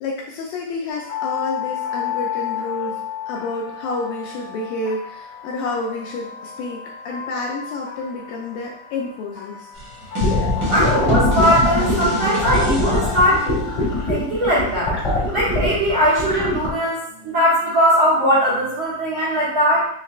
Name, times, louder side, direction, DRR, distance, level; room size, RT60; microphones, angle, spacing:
voice 1, 0.0-3.0 3.3-9.7, left 3 dB, 80° left, -1 dB, 2.1 m, -29 dB
sound 1, 0.9-14.8, left 9 dB, 55° left, 0.8 m, -32 dB
sound 2, 9.7-13.2, right 2 dB, 90° right, 1.0 m, -27 dB
sound 3, 10.2-16.7, left 2 dB, 35° left, 1.2 m, -22 dB
voice 2, 10.7-13.6 14.1-14.9 15.3-19.8, equal, 60° right, -10 dB, 1.3 m, -19 dB
5.9 x 3.1 x 2.4 m, 0.65 s
omnidirectional pair, 4.4 m